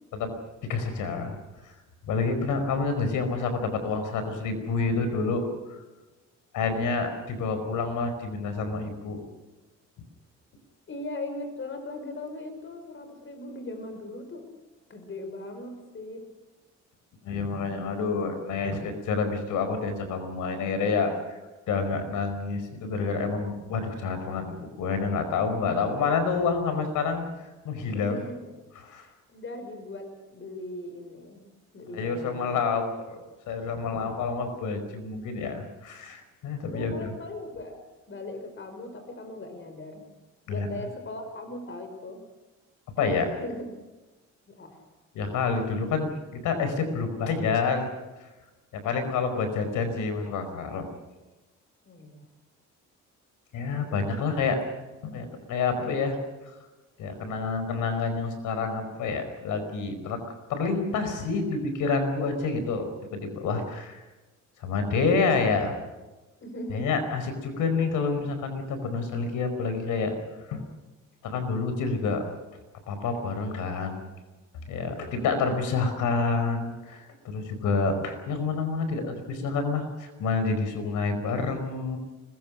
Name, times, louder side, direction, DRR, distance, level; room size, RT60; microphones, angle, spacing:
voice 1, 0.7-1.4 1.6-1.7 2.0-5.8 6.5-9.2 17.2-21.4 21.7-27.3 27.6-28.2 28.8-29.1 31.9-37.1 40.5-40.7 43.0-43.4 45.1-47.9 48.2-48.3 48.7-50.9 53.5-54.6 55.0-56.2 57.0-60.2 60.5-62.9 63.1-64.0 64.6-65.7 66.7-70.1 70.5-70.6 71.2-72.2 72.9-74.0 74.7-82.0, left 4 dB, 90° left, 8 dB, 5.1 m, -28 dB
voice 2, 10.9-14.5 14.9-16.3 27.9-28.4 28.9-31.4 31.7-32.6 33.8-34.1 36.7-40.1 40.5-42.2 43.4-43.6 44.5-44.8 51.9-52.3 66.4-67.0 74.9-75.1, left 2 dB, 40° left, 7 dB, 5.7 m, -39 dB
25.5 x 21.5 x 6.4 m, 1.2 s
cardioid pair, 90°, 30 cm